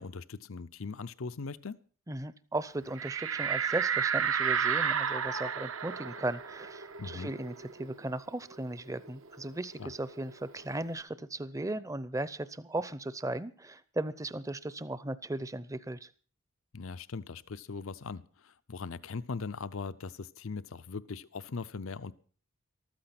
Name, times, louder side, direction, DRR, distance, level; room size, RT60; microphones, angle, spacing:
voice 1, 0.0-1.8 7.0-7.3 9.8-9.9 16.7-22.1, left 4 dB, 75° left, 14 dB, 0.6 m, -40 dB
voice 2, 2.1-16.1, right 2 dB, 15° right, 16 dB, 0.6 m, -37 dB
sound 1, 3.0-8.2 8.5-8.6 8.9-10.6, right 7 dB, 70° right, 1.2 m, -32 dB
14.5 x 13.5 x 5.9 m, 0.42 s
head